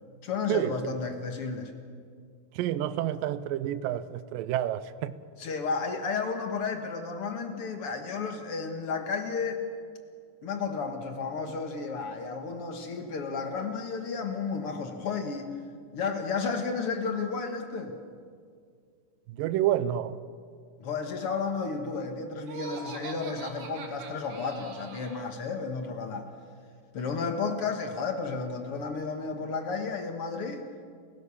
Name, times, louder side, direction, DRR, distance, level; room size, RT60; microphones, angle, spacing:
voice 1, 0.2-1.7 5.4-9.6 10.4-15.5 15.9-18.0 20.8-26.3 26.9-30.6, left 4 dB, 55° left, 1.8 m, -32 dB
voice 2, 2.6-5.1 19.3-20.2, right 12 dB, 80° right, 2.3 m, -29 dB
Laughter, 22.4-25.3, right 4 dB, 65° right, 3.4 m, -42 dB
29.5 x 16.0 x 7.1 m
omnidirectional pair, 4.2 m